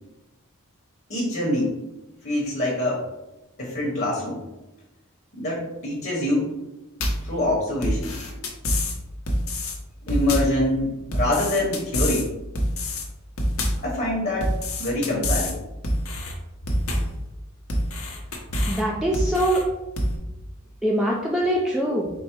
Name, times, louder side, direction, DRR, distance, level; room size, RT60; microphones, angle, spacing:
voice 1, 1.1-1.7 2.2-3.0 3.6-4.4 5.4-6.5 7.2-8.1 10.1-12.3 13.8-14.5 14.8-15.6, left 1 dB, 45° left, -4 dB, 1.0 m, -25 dB
sound 1, 7.0-7.3 7.8-9.0 9.3-9.8 10.1-10.6 11.1-12.3 12.6-13.1 13.4-13.9 14.4-15.5 15.8-16.3 16.7-17.2 17.7-18.8 19.1-19.6 20.0-20.2, left 1 dB, 75° left, 0.9 m, -26 dB
voice 2, 18.7-19.7 20.8-22.1, right 1 dB, ahead, -3 dB, 0.4 m, -23 dB
4.7 x 2.0 x 4.4 m, 1.0 s
head